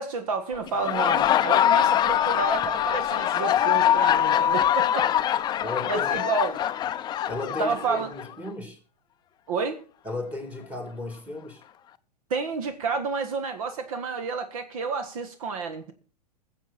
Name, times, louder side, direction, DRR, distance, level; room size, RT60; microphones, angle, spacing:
voice 1, 0.0-5.1 5.9-6.6 7.6-8.1 9.5-9.8 12.3-15.9, right 4 dB, 60° right, 1.6 m, -30 dB
Laughter, 0.7-8.3, left 11 dB, 20° left, 0.5 m, -23 dB
voice 2, 5.6-6.2 7.3-8.8 10.0-11.6, left 2 dB, 5° right, 2.8 m, -34 dB
21.0 x 7.7 x 4.3 m
figure-of-eight pair, 105°, 21 cm